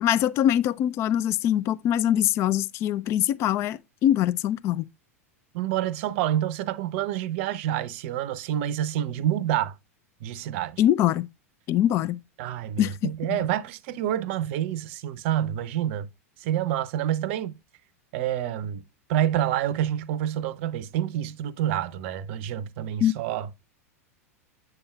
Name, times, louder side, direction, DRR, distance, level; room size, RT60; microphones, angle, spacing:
voice 1, 0.0-4.8 10.8-11.3 11.7-12.2 12.8-13.4 23.0-23.1, left 11 dB, 35° left, 0.4 m, -23 dB
voice 2, 5.5-9.7 10.2-10.8 12.4-16.1 16.4-17.6 18.1-18.8 19.1-23.5, right 11 dB, 50° right, 0.6 m, -28 dB
8.0 x 6.9 x 2.2 m
figure-of-eight pair, 90°, 8 cm